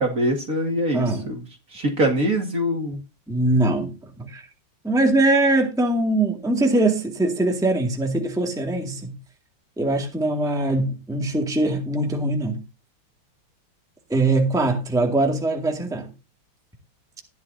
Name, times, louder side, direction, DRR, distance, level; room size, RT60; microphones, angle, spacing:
voice 1, 0.0-1.4 1.7-3.0, right 1 dB, 40° right, 2.7 m, -23 dB
voice 2, 0.9-1.3 3.3-4.4 4.8-9.1 9.8-12.6 14.1-16.1, right 2 dB, ahead, 1.9 m, -22 dB
15.0 x 11.0 x 2.7 m
omnidirectional pair, 2.3 m